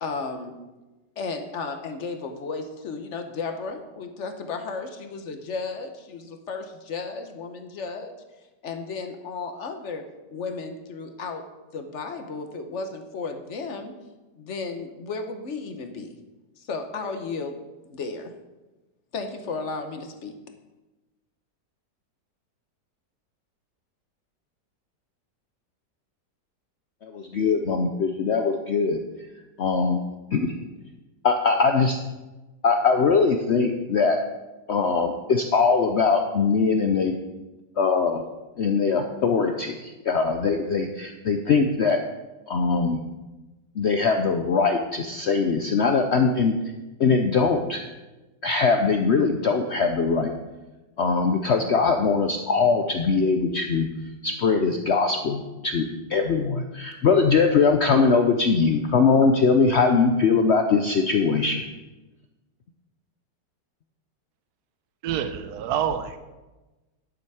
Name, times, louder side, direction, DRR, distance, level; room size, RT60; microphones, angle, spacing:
voice 1, 0.0-0.6 1.2-8.2 8.6-11.4 11.7-13.9 14.3-16.1 16.6-18.3 19.1-20.4, left 4 dB, 50° left, 6 dB, 1.1 m, -34 dB
voice 2, 27.0-29.0 29.6-30.0 30.3-30.5 31.2-32.0 32.6-34.2 34.7-37.1 37.8-38.2 38.6-42.0 42.5-43.0 43.8-46.5 47.0-47.8 48.4-50.3 51.0-53.9 54.2-55.8 56.1-61.6, left 4 dB, 65° left, 5 dB, 0.6 m, -21 dB
voice 3, 65.0-66.2, right 9 dB, 70° right, 10 dB, 1.1 m, -27 dB
10.5 x 7.2 x 4.8 m, 1.1 s
omnidirectional pair, 1.9 m